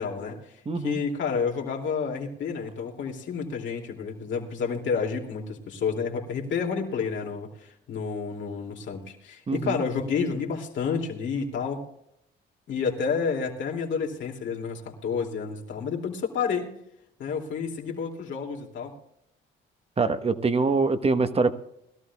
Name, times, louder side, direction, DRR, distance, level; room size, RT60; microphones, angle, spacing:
voice 1, 0.0-11.8 12.7-16.7 17.2-18.9, left 5 dB, 70° left, 0 dB, 2.8 m, -30 dB
voice 2, 0.7-1.0 9.5-9.8 20.0-21.6, right 4 dB, 30° right, 10 dB, 1.1 m, -24 dB
21.0 x 13.0 x 2.4 m, 0.81 s
cardioid pair, 90°, 20 cm